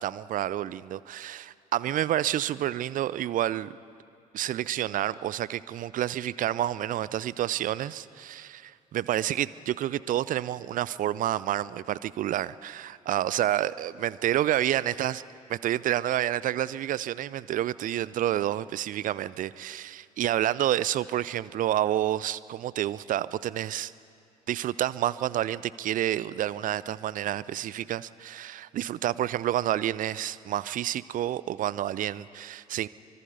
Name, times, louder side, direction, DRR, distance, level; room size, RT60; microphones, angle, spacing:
voice 1, 0.0-3.8 4.3-15.2 15.5-23.9 24.5-32.9, right 12 dB, 45° right, 19 dB, 0.6 m, -29 dB
25.0 x 24.5 x 5.3 m, 2.5 s
figure-of-eight pair, 50°, 20 cm